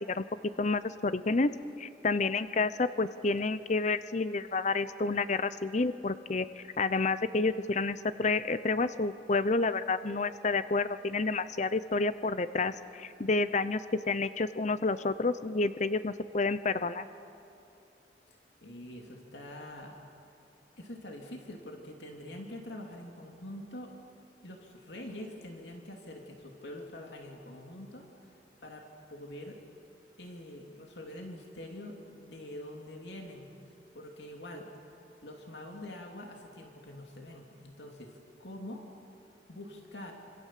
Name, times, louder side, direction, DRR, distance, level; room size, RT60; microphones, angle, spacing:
voice 1, 0.6-1.5 1.8-13.8 14.1-17.1, left 3 dB, 40° left, 13 dB, 0.7 m, -29 dB
voice 2, 18.3-20.0 20.8-23.9 24.4-29.6 30.2-34.7 35.2-38.9 39.5-40.1, left 1 dB, 75° left, 1 dB, 2.8 m, -45 dB
27.5 x 26.5 x 7.5 m, 2.8 s
head